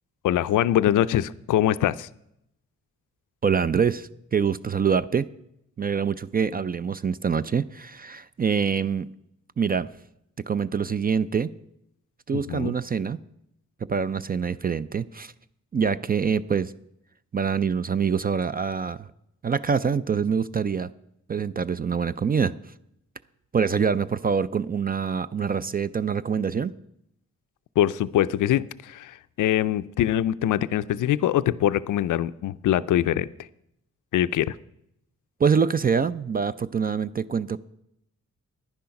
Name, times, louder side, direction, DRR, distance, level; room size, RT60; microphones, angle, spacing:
voice 1, 0.2-2.1 12.3-12.7 27.8-33.3 34.1-34.6, left 12 dB, 85° left, 14 dB, 0.5 m, -23 dB
voice 2, 3.4-5.3 5.8-9.1 9.6-9.9 10.5-11.5 12.3-13.2 13.9-15.3 15.7-16.7 17.3-19.1 19.4-20.9 21.3-22.5 23.5-26.8 35.4-37.6, right 6 dB, 30° right, 15 dB, 0.4 m, -25 dB
10.5 x 10.5 x 5.8 m, 0.78 s
cardioid pair, 95°, 30 cm